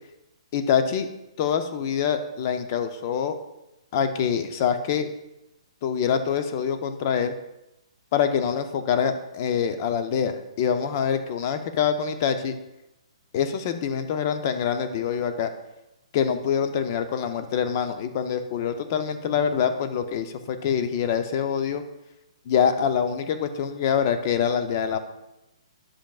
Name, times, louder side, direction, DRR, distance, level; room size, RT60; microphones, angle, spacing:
voice 1, 0.5-1.1 1.4-3.4 3.9-5.1 5.8-7.3 8.1-12.6 13.3-15.5 16.1-21.8 22.5-25.0, left 7 dB, 30° left, 8 dB, 0.5 m, -25 dB
10.5 x 7.5 x 2.4 m, 0.92 s
hypercardioid pair, 170°, 3 cm